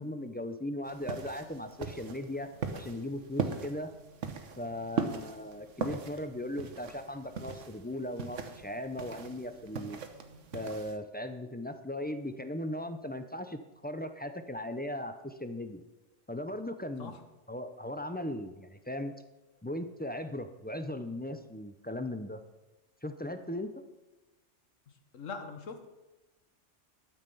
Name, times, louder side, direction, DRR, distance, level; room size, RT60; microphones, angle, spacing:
voice 1, 0.0-3.9 4.6-10.0 10.5-15.8 16.3-17.1 17.5-19.1 19.6-22.4 23.0-23.7, left 1 dB, 10° left, 8 dB, 0.4 m, -38 dB
sound 1, 0.8-11.0, right 5 dB, 75° right, 1.3 m, -40 dB
voice 2, 25.1-25.9, left 5 dB, 85° left, 7 dB, 1.5 m, -41 dB
12.5 x 7.4 x 5.5 m, 1.1 s
omnidirectional pair, 1.3 m